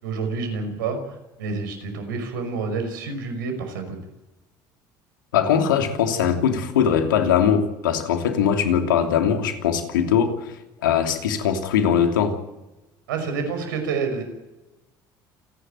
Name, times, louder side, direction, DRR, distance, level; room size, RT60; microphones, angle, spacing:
voice 1, 0.0-4.0 13.1-14.2, right 4 dB, 85° right, 7 dB, 5.6 m, -28 dB
voice 2, 5.3-10.5 10.8-12.4, left 8 dB, 90° left, 6 dB, 2.9 m, -21 dB
28.5 x 11.5 x 9.1 m, 1.0 s
hypercardioid pair, 70°, 11 cm